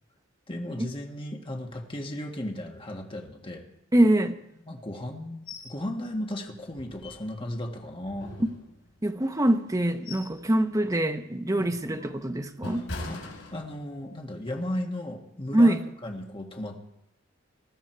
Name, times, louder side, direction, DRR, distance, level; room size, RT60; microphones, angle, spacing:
voice 1, 0.5-3.6 4.6-8.3 11.6-11.8 13.1-13.2 13.5-15.8 16.0-16.8, left 1 dB, 30° left, 2 dB, 1.8 m, -35 dB
voice 2, 3.9-4.4 9.0-12.8 15.5-15.8, right 1 dB, 20° right, 7 dB, 1.0 m, -24 dB
sound 1, 5.5-5.8 6.1-6.2 6.7-7.5 8.0-9.1 9.6-10.5 10.8-11.1 11.6-14.1 14.5-14.7, left 2 dB, 85° left, 4.6 m, -41 dB
20.0 x 14.0 x 4.6 m, 0.83 s
head